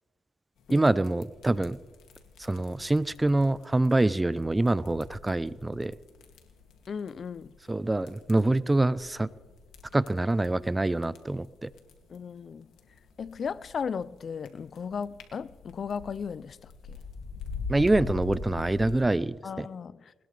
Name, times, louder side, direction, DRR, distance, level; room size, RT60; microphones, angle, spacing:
sound 1, 0.6-19.1, left 5 dB, 80° left, 2.3 m, -44 dB
voice 1, 0.7-1.8 2.4-5.9 7.7-9.3 9.9-11.7 17.7-19.7, right 2 dB, 15° right, 0.5 m, -25 dB
voice 2, 6.9-7.5 12.1-12.7 13.2-17.0 19.4-20.1, left 6 dB, 50° left, 0.4 m, -36 dB
21.0 x 20.0 x 3.3 m
cardioid pair, 90°, 0 cm